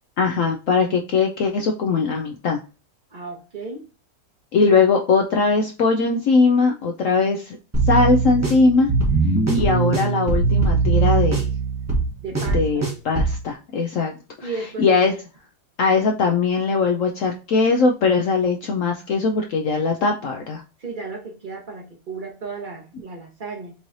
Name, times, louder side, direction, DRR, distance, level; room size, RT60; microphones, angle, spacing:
voice 1, 0.2-2.6 4.5-7.6 7.9-8.9 9.5-11.4 12.5-14.1 14.4-14.5 14.8-15.1 15.8-20.6, left 4 dB, 70° left, 2 dB, 0.7 m, -20 dB
voice 2, 3.1-3.9 12.2-12.8 14.4-14.9 20.8-23.7, right 4 dB, 35° right, 1 dB, 0.9 m, -34 dB
sound 1, 7.7-13.4, right 4 dB, 10° right, 0.9 m, -20 dB
5.4 x 3.1 x 2.6 m, 0.32 s
omnidirectional pair, 1.9 m